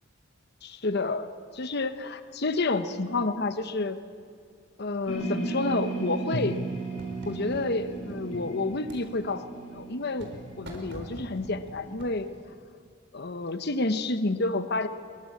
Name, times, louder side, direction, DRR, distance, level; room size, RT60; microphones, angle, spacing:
voice 1, 0.6-1.3 1.5-4.0 4.8-6.6 7.2-9.5 9.7-10.3 10.6-12.3 13.1-14.9, left 3 dB, 50° left, 10 dB, 1.0 m, -29 dB
sound 1, 5.1-11.8, right 3 dB, 70° left, 7.1 m, -35 dB
sound 2, 6.3-8.2 8.7-9.1 9.7-10.4 10.6-12.3, right 1 dB, 55° right, 4.5 m, -44 dB
24.0 x 22.5 x 8.5 m, 2.1 s
head